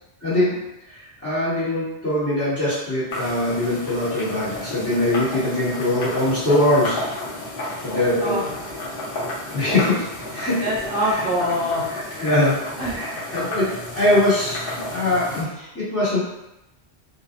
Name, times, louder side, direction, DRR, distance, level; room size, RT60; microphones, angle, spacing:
voice 1, 0.2-0.6 0.9-7.0 7.8-8.4 9.5-10.1 10.3-10.6 11.1-11.2 12.2-12.5 12.9-13.7 13.9-16.2, left 1 dB, 15° left, -12 dB, 1.0 m, -22 dB
sound 1, 3.1-15.4, left 1 dB, 55° left, 1.0 m, -32 dB
voice 2, 8.2-8.5 10.6-11.9 12.8-13.3, equal, 60° right, -7 dB, 0.8 m, -24 dB
2.6 x 2.1 x 2.4 m, 0.90 s
omnidirectional pair, 1.1 m